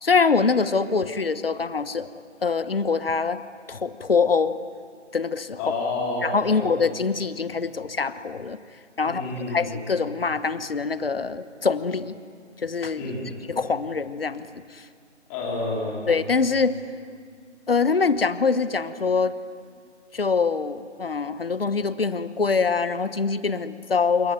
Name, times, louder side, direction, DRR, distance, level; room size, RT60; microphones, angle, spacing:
voice 1, 0.0-2.1 2.4-3.4 3.7-4.6 5.1-5.6 6.2-8.6 9.0-12.2 12.6-13.0 13.5-14.8 16.1-16.8 17.7-19.4 20.1-24.3, left 4 dB, 50° left, 14 dB, 1.2 m, -24 dB
voice 2, 5.6-6.8 9.0-9.8 13.0-13.3 15.3-16.1, left 2 dB, 10° left, -4 dB, 3.6 m, -29 dB
27.0 x 22.5 x 9.3 m, 2.1 s
figure-of-eight pair, 160°, 36 cm